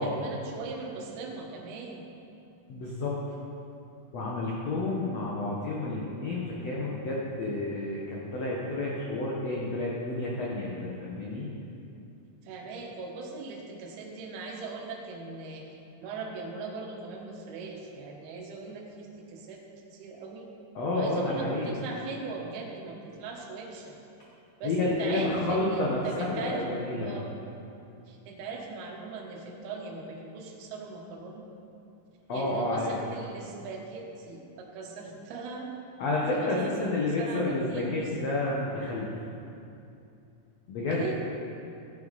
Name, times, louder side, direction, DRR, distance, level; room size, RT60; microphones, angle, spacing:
voice 1, 0.0-2.0 12.4-15.6 16.0-19.6 19.9-20.5 20.9-24.0 24.6-26.6 27.0-27.3 28.1-31.4 32.3-35.7 36.2-38.1 40.8-41.1, right 4 dB, 70° right, -1 dB, 3.1 m, -39 dB
voice 2, 2.7-3.2 4.1-11.5 20.7-21.8 24.6-27.1 32.3-33.0 36.0-39.1 40.7-41.1, left 2 dB, 75° left, -4 dB, 1.5 m, -30 dB
14.0 x 10.0 x 4.1 m, 2.7 s
omnidirectional pair, 4.8 m